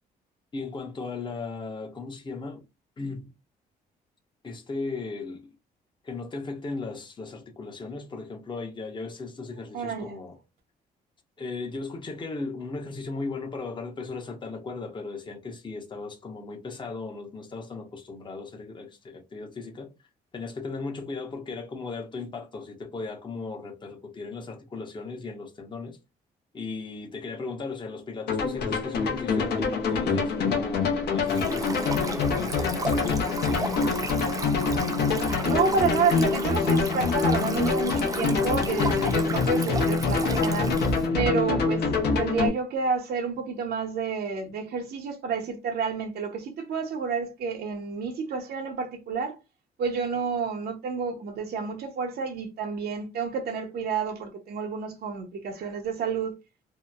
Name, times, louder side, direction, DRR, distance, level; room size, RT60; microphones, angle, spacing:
voice 1, 0.5-2.6 3.0-3.3 4.4-5.5 6.0-10.4 11.4-19.9 20.3-26.0 26.5-34.1, left 3 dB, 25° left, 0.7 m, -37 dB
voice 2, 9.7-10.2 35.4-40.8 41.1-41.9 42.2-49.4 49.8-56.4, right 5 dB, 65° right, 0.6 m, -29 dB
sound 1, 28.3-42.5, left 4 dB, 70° left, 0.7 m, -25 dB
Stream, 31.3-41.1, right 2 dB, 20° right, 0.5 m, -35 dB
2.8 x 2.0 x 2.3 m
cardioid pair, 75°, 17 cm